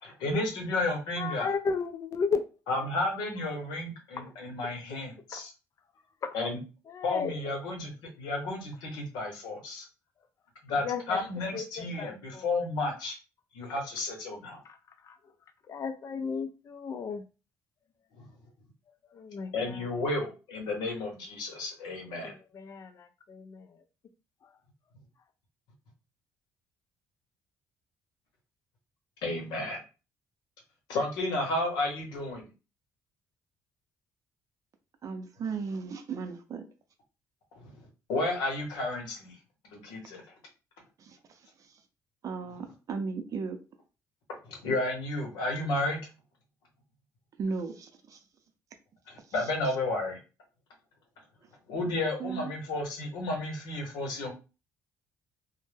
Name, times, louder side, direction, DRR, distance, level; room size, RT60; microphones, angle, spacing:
voice 1, 0.0-1.5 2.7-5.5 6.3-6.6 7.0-9.9 10.6-13.2 13.5-14.6 18.1-18.3 19.5-22.3 29.2-29.8 30.9-32.5 37.6-37.7 38.1-39.3 39.6-40.2 44.4-46.0 49.1-50.2 51.7-54.3, left 2 dB, 90° left, 0.8 m, -32 dB
voice 2, 1.2-2.4 5.3-5.4 6.2-6.3 6.9-7.3 10.8-11.2 11.5-12.5 15.1-15.2 15.7-17.2 19.1-19.5 22.2-23.7, left 5 dB, 50° left, 0.4 m, -34 dB
voice 3, 35.0-36.6 41.0-41.2 42.2-43.6 47.4-48.2 52.2-52.5, right 5 dB, 50° right, 0.5 m, -35 dB
2.1 x 2.1 x 3.2 m
cardioid pair, 95°, 7 cm